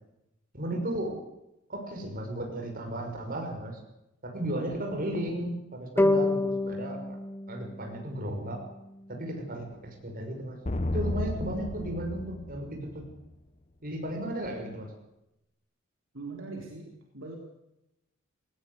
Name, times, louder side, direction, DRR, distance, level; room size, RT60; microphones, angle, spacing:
voice 1, 0.5-1.2 1.7-3.8 4.2-7.2 7.5-8.6 9.1-10.6 10.8-13.0 13.8-14.9, right 1 dB, 45° right, 3 dB, 6.1 m, -34 dB
sound 1, 6.0-9.2, left 2 dB, 10° left, 1.0 m, -29 dB
sound 2, 10.7-13.3, left 1 dB, 35° left, 1.1 m, -33 dB
voice 2, 16.1-17.4, right 3 dB, 70° right, 0 dB, 4.0 m, -41 dB
19.5 x 18.5 x 8.2 m, 0.88 s
head